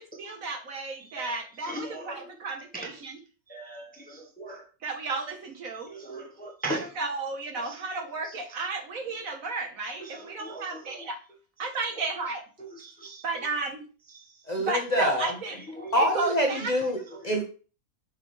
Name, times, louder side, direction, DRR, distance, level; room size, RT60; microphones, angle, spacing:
voice 1, 0.0-3.2 4.8-5.9 6.7-11.2 11.6-12.4 13.2-13.8 14.7-15.5 16.0-16.7, right 3 dB, 65° right, 1.6 m, -33 dB
voice 2, 1.7-2.2 3.5-4.6 5.9-6.8 10.4-10.6 12.8-13.2 15.8-15.9, right 1 dB, 5° left, 1.0 m, -37 dB
voice 3, 14.5-15.3 15.9-17.4, equal, 30° left, 1.3 m, -26 dB
6.9 x 5.5 x 3.2 m
omnidirectional pair, 1.6 m